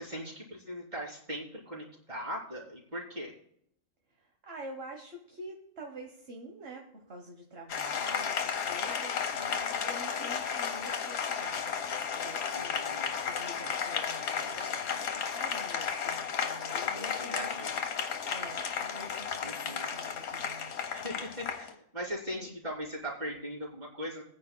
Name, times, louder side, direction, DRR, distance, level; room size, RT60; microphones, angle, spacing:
voice 1, 0.0-3.3 12.5-13.1 16.8-16.9 17.2-17.7 19.4-19.9 20.9-24.2, equal, 30° right, -4 dB, 3.3 m, -40 dB
voice 2, 4.2-13.0 13.2-17.5 18.3-20.8 22.4-22.5, right 1 dB, 45° right, 2 dB, 1.4 m, -47 dB
Applause, 7.7-21.7, left 7 dB, 85° left, 1.5 m, -33 dB
21.5 x 9.5 x 2.2 m, 0.72 s
omnidirectional pair, 1.5 m